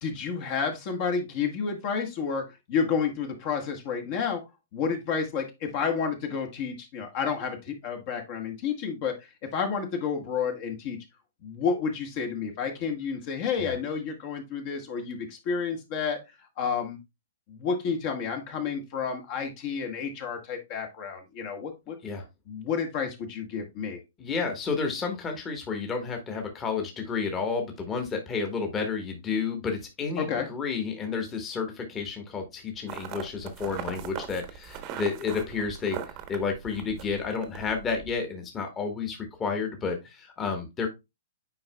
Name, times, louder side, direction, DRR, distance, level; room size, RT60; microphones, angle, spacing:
voice 1, 0.0-4.4 4.7-9.3 9.5-11.0 11.4-16.2 16.6-17.0 17.5-22.0 22.5-24.0 30.2-30.5, left 6 dB, 45° left, 4 dB, 1.5 m, -30 dB
voice 2, 24.2-36.0 36.3-40.9, left 5 dB, 20° left, 3 dB, 1.4 m, -31 dB
sound 1, 32.9-38.2, right 9 dB, 35° right, 1.0 m, -40 dB
8.5 x 4.9 x 2.3 m, 0.23 s
hypercardioid pair, 120°, 0 cm